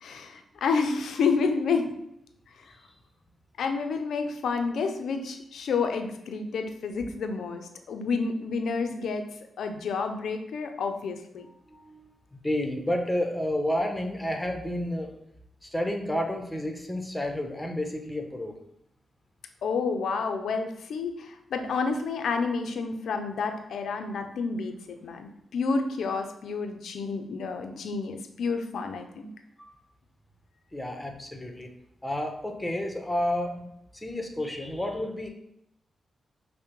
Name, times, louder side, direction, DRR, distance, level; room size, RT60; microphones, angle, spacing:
voice 1, 0.0-1.9 3.6-9.3 9.6-11.5 19.6-29.3, left 4 dB, 75° left, 6 dB, 0.4 m, -29 dB
voice 2, 11.6-15.1 15.6-18.6 29.6-29.7 30.7-31.7 32.0-33.7 33.9-35.3, left 1 dB, 15° left, 3 dB, 0.8 m, -31 dB
5.6 x 2.1 x 3.0 m, 0.78 s
supercardioid pair, 45°, 0 cm